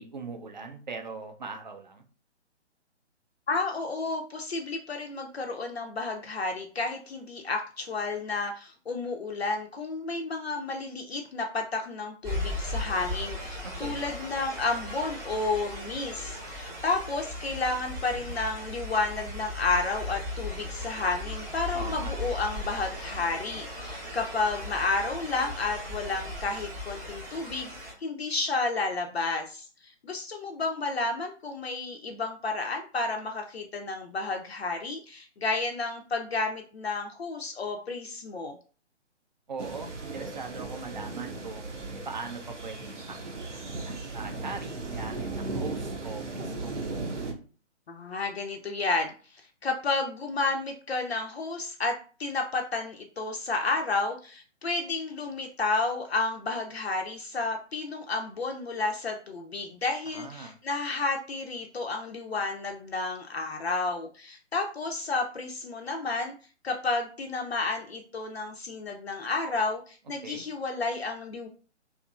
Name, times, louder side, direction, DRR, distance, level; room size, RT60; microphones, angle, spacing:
voice 1, 0.0-2.0 13.6-14.0 21.7-22.1 39.5-41.7 42.1-46.7 60.1-60.5 70.2-70.4, right 4 dB, 40° right, 5 dB, 0.4 m, -40 dB
voice 2, 3.5-38.6 47.9-66.3 66.6-71.5, left 3 dB, 60° left, 3 dB, 0.5 m, -31 dB
sound 1, 12.2-27.9, left 1 dB, 15° right, 0.8 m, -37 dB
sound 2, 39.6-47.3, right 3 dB, 85° right, 0.7 m, -36 dB
2.8 x 2.4 x 2.3 m, 0.38 s
figure-of-eight pair, 140°, 35 cm